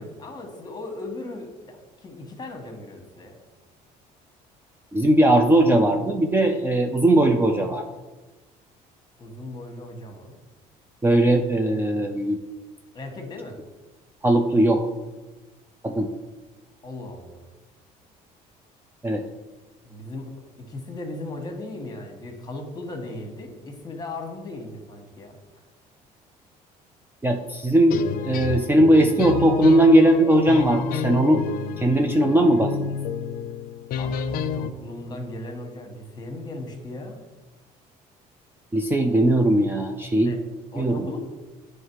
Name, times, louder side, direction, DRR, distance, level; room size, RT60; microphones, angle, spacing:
voice 1, 0.0-3.4 9.2-10.4 12.9-13.6 16.8-17.5 19.8-20.3 20.7-25.4 34.0-37.2 40.2-40.4 40.7-41.2, left 2 dB, 25° left, 4 dB, 1.4 m, -37 dB
voice 2, 4.9-7.8 11.0-12.4 14.2-14.9 15.8-16.1 19.0-19.2 27.2-31.5 31.8-33.0 38.7-40.3 40.8-41.1, right 1 dB, 15° right, 4 dB, 0.5 m, -19 dB
sound 1, 27.9-34.7, left 7 dB, 65° left, 0.5 m, -30 dB
9.2 x 3.2 x 4.6 m, 1.2 s
cardioid pair, 110°, 16 cm